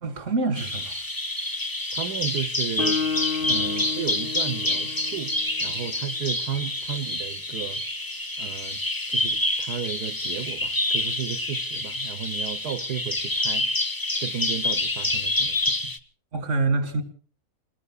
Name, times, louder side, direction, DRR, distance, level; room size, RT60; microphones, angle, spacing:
voice 1, 0.0-1.0 3.4-3.6 16.3-17.0, right 3 dB, 50° right, 2.4 m, -26 dB
Bird vocalization bird call bird song, 0.6-16.0, left 2 dB, 15° left, 1.0 m, -27 dB
voice 2, 1.9-3.0 3.5-5.3 5.6-7.8 8.4-8.8 9.1-13.7 14.2-15.9, right 9 dB, 85° right, 1.5 m, -34 dB
Guitar, 2.8-6.4, left 5 dB, 35° left, 3.5 m, -32 dB
28.5 x 20.5 x 2.4 m
omnidirectional pair, 1.6 m